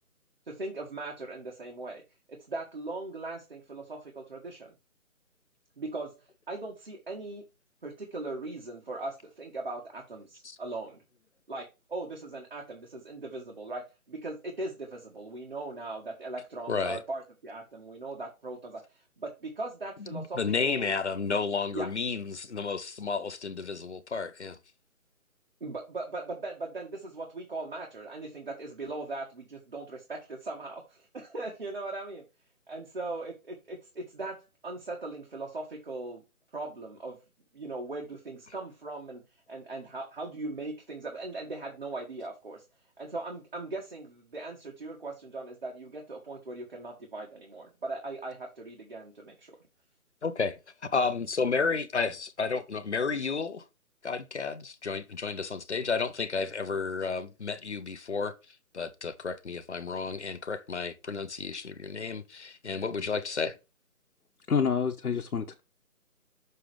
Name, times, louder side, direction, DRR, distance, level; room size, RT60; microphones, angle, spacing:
voice 1, 0.5-2.0 2.3-4.7 5.8-6.1 6.5-7.4 7.8-11.0 11.5-18.8 19.2-20.9 21.7-21.9 25.6-32.2 32.7-36.2 36.5-37.2 37.5-39.2 39.5-42.6 43.0-49.6, right 2 dB, 40° right, 1.6 m, -39 dB
voice 2, 16.7-17.0 20.1-24.6 50.2-50.6 50.9-53.6 54.0-58.3 58.7-63.6, left 4 dB, 50° left, 0.8 m, -32 dB
voice 3, 64.5-65.6, left 6 dB, 80° left, 1.2 m, -27 dB
6.6 x 3.7 x 4.8 m
hypercardioid pair, 180°, 44 cm